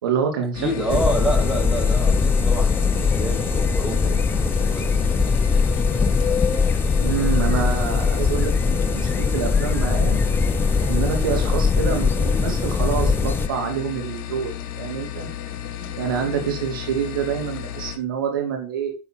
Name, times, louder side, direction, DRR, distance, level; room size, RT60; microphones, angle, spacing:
voice 1, 0.0-1.0 6.9-10.2 10.9-15.3 16.0-18.9, right 7 dB, 85° right, 4 dB, 2.7 m, -27 dB
sound 1, 0.5-18.0, left 11 dB, 70° left, 1.9 m, -34 dB
voice 2, 0.6-6.7 15.8-15.9 16.2-16.6, equal, ahead, -1 dB, 6.4 m, -30 dB
sound 2, 0.9-13.5, left 5 dB, 20° left, 0.8 m, -21 dB
9.9 x 7.1 x 4.7 m, 0.30 s
hypercardioid pair, 90°, 11 cm